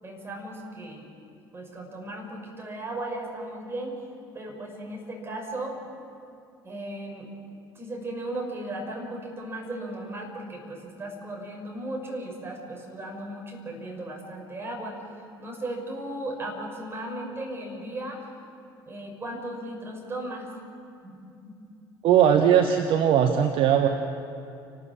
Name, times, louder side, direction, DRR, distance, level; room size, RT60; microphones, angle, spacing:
voice 1, 0.0-1.1 1.5-4.0 4.3-5.8 6.6-7.3 7.7-18.3 18.8-20.5 21.0-21.1 21.4-21.5, right 1 dB, 20° right, 0 dB, 6.4 m, -36 dB
voice 2, 22.0-23.9, right 9 dB, 50° right, 5 dB, 1.3 m, -19 dB
29.0 x 13.5 x 8.7 m, 2.6 s
figure-of-eight pair, 60°, 12 cm